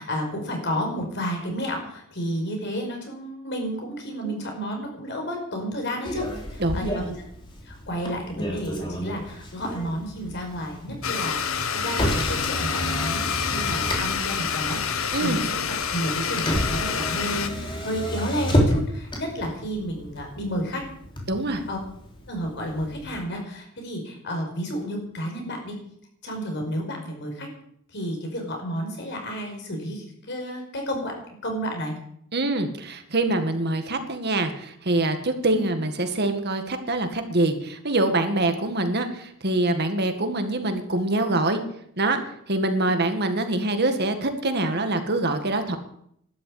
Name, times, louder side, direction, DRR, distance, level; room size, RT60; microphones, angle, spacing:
voice 1, 0.0-7.1 7.7-11.4 11.7-15.6 15.9-20.8 21.7-21.8 22.3-25.7 26.2-27.5 27.9-31.1 31.4-31.9 35.5-35.7 42.8-42.9, equal, 55° left, 2 dB, 5.5 m, -31 dB
Motor vehicle (road), 6.0-23.2, equal, 25° left, 3.5 m, -31 dB
voice 2, 6.6-7.1 15.1-15.4 21.3-21.6 32.3-41.6 42.0-42.2 42.5-45.8, right 2 dB, 50° right, 7 dB, 1.9 m, -25 dB
Domestic sounds home sounds, 11.0-17.5, left 6 dB, 70° left, 1.4 m, -27 dB
12.5 x 11.5 x 8.7 m, 0.70 s
head